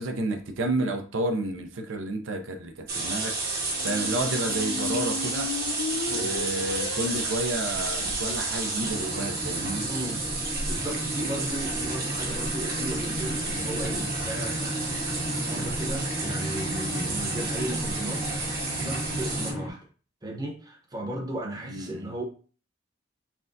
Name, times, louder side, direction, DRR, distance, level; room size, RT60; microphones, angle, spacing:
voice 1, 0.0-3.4 3.8-5.5 6.1-9.9 21.7-22.1, right 2 dB, 85° right, 5 dB, 0.6 m, -30 dB
sound 1, 2.9-19.5, right 3 dB, 55° right, 1.2 m, -31 dB
Squeak, 3.7-9.7, left 5 dB, 70° left, 0.3 m, -37 dB
sound 2, 8.8-19.7, equal, 30° left, 0.7 m, -35 dB
voice 2, 9.9-10.2 10.7-14.8 15.5-18.2 18.7-19.8 20.2-22.2, right 1 dB, 20° right, 0 dB, 0.8 m, -35 dB
5.8 x 2.2 x 2.6 m, 0.39 s
head